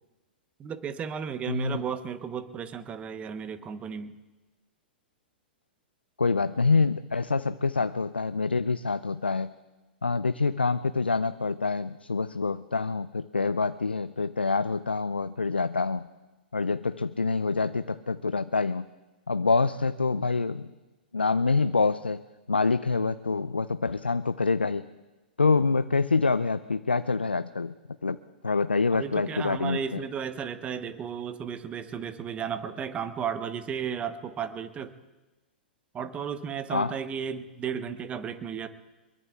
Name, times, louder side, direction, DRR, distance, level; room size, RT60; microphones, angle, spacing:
voice 1, 0.6-4.2 28.9-34.9 35.9-38.7, right 7 dB, 20° right, 11 dB, 1.0 m, -34 dB
voice 2, 1.5-1.8 6.2-9.5 10.0-16.1 16.5-18.9 19.3-20.7 21.1-22.2 22.5-24.9 25.4-27.7 28.0-28.2 28.4-30.0 36.7-36.9, left 4 dB, 90° left, 14 dB, 0.4 m, -26 dB
24.0 x 22.0 x 2.4 m, 1.2 s
figure-of-eight pair, 105°, 5 cm